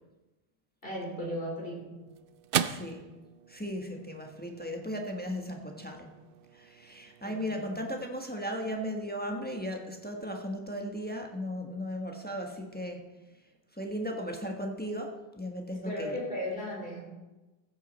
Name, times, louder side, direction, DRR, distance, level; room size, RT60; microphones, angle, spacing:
voice 1, 0.8-2.0 7.2-7.6 15.7-17.0, equal, 65° left, -4 dB, 4.3 m, -36 dB
sound 1, 1.2-9.8, right 9 dB, 65° right, 0.7 m, -40 dB
voice 2, 2.6-3.0 3.5-6.1 6.5-13.0 13.7-16.2, equal, 10° left, 2 dB, 1.2 m, -36 dB
15.0 x 8.4 x 4.1 m, 1.1 s
omnidirectional pair, 1.0 m